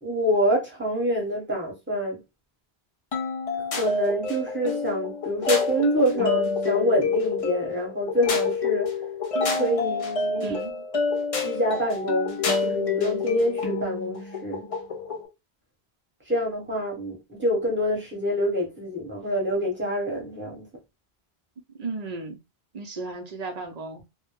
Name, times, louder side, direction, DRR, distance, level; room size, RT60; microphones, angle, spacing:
voice 1, 0.0-2.2 3.8-8.9 9.5-10.6 11.4-14.7 16.3-20.7, equal, 10° right, 0.9 m, -26 dB
sound 1, 3.1-15.3, left 4 dB, 45° left, 0.5 m, -28 dB
voice 2, 10.4-10.8 21.8-22.4 22.7-24.0, right 3 dB, 50° right, 0.5 m, -35 dB
2.1 x 2.0 x 3.0 m
omnidirectional pair, 1.1 m